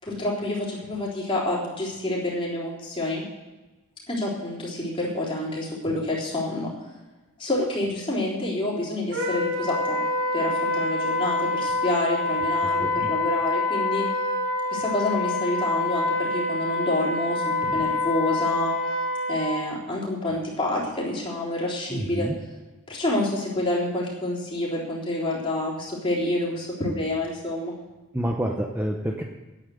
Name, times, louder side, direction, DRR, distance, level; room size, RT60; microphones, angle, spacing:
voice 1, 0.0-3.2 4.1-6.7 7.4-10.0 10.3-14.0 14.7-18.7 19.3-22.3 22.9-27.7, left 1 dB, 25° left, -5 dB, 3.6 m, -28 dB
Wind instrument woodwind instrument, 9.1-19.5, left 2 dB, 65° right, 5.5 m, -26 dB
voice 2, 21.9-22.3 28.1-29.2, right 1 dB, 10° right, 1 dB, 0.8 m, -27 dB
10.5 x 8.8 x 7.9 m, 1.2 s
head